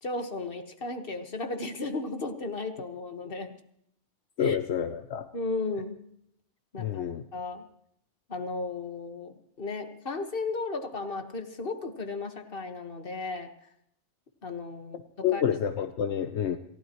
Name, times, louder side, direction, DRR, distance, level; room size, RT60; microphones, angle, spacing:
voice 1, 0.0-3.5 4.4-4.6 5.3-6.0 6.7-7.0 7.3-7.6 8.3-13.5 14.4-15.4, left 3 dB, 55° left, 6 dB, 1.8 m, -35 dB
voice 2, 4.4-5.3 6.8-7.2 15.2-16.6, left 8 dB, 75° left, 8 dB, 1.1 m, -28 dB
28.0 x 15.5 x 3.1 m, 0.72 s
omnidirectional pair, 1.2 m